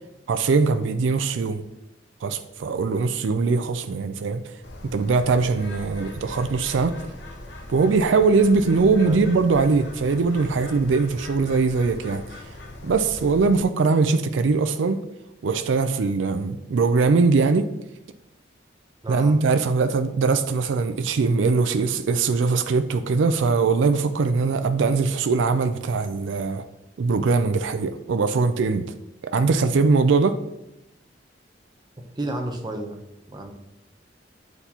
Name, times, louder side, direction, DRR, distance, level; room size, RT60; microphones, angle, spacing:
voice 1, 0.3-1.6 2.2-4.4 4.9-7.0 7.7-12.2 12.8-15.0 15.4-17.7 19.1-26.6 27.0-28.8 29.3-30.4, right 4 dB, 80° right, 0.4 m, -21 dB
Bird, 4.6-13.6, left 1 dB, 70° left, 0.9 m, -40 dB
voice 2, 9.0-9.4 19.0-19.4 32.2-33.0 33.3-33.5, right 1 dB, 20° right, 0.7 m, -31 dB
7.9 x 4.1 x 2.8 m
head